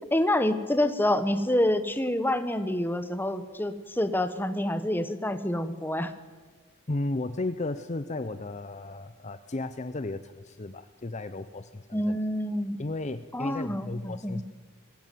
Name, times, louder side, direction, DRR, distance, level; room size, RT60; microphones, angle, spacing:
voice 1, 0.1-6.1 11.9-12.8 13.3-14.4, left 1 dB, 10° left, 10 dB, 1.2 m, -27 dB
voice 2, 6.9-12.2 12.8-14.4, left 2 dB, 35° left, 11 dB, 0.6 m, -34 dB
21.5 x 16.0 x 9.3 m, 1.4 s
head